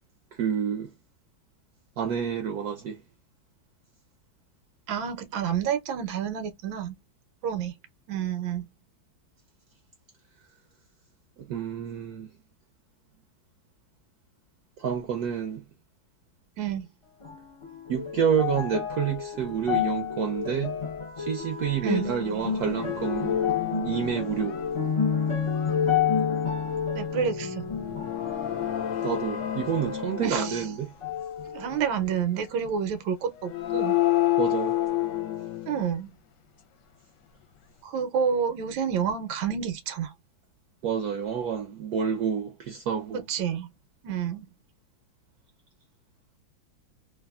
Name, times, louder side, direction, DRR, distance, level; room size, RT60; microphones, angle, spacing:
voice 1, 0.4-0.9 2.0-3.0 11.5-12.3 14.8-15.6 17.9-20.8 21.2-23.4 23.8-24.6 29.0-30.9 34.4-34.8 40.8-43.2, right 7 dB, 70° right, 1.0 m, -28 dB
voice 2, 4.9-6.9 7.4-7.7 8.1-8.7 16.6-16.9 21.8-22.1 26.9-27.7 30.2-30.6 31.5-33.9 35.7-36.1 37.8-40.1 43.1-43.7 44.0-44.5, right 7 dB, 85° right, 1.5 m, -29 dB
sound 1, 17.2-30.7 31.0-32.0 32.6-32.7, left 7 dB, 50° left, 0.3 m, -30 dB
sound 2, 22.2-22.3 22.5-25.0 25.5-25.9 27.7-30.8 31.2-31.3 33.3-36.0, left 13 dB, 70° left, 1.2 m, -30 dB
3.3 x 2.3 x 2.3 m
omnidirectional pair, 2.1 m